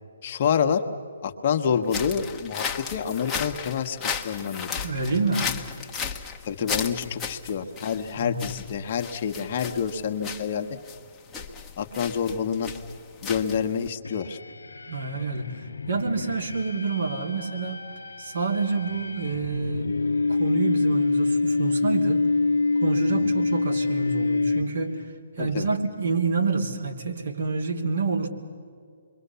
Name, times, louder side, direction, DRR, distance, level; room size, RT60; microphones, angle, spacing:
voice 1, 0.2-0.8 1.2-2.6 2.9-4.0 4.2-4.8 6.4-10.7 11.8-12.7 13.2-14.4 23.1-23.3 25.4-25.7, left 7 dB, 45° left, 6 dB, 1.3 m, -27 dB
sound 1, 1.8-13.9, left 6 dB, 15° left, 1.2 m, -35 dB
voice 2, 4.8-5.5 8.2-8.5 14.9-15.6 15.9-17.8 18.2-20.0 20.3-22.2 22.8-25.0 25.4-28.3, right 4 dB, 65° right, 3 dB, 2.9 m, -28 dB
sound 2, 14.0-25.1, left 3 dB, 80° left, 0.8 m, -26 dB
28.0 x 23.0 x 7.0 m, 2.3 s
figure-of-eight pair, 140°, 0 cm